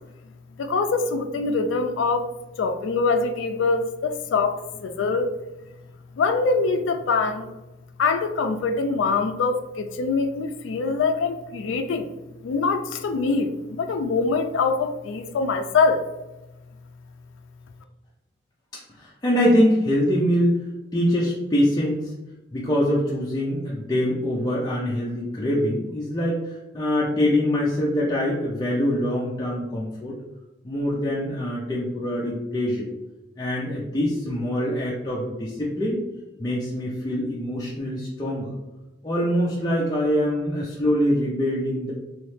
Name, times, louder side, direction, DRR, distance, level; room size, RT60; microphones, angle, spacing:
voice 1, 0.6-2.3 2.6-5.4 6.2-7.5 8.0-12.1 12.4-16.1, left 4 dB, 80° left, 6 dB, 0.3 m, -24 dB
voice 2, 18.9-20.6 20.9-22.1 22.5-30.2 30.6-32.9 33.4-36.0 36.4-38.5 39.0-41.9, equal, 20° left, -5 dB, 0.5 m, -24 dB
3.1 x 3.1 x 3.1 m, 1.0 s
head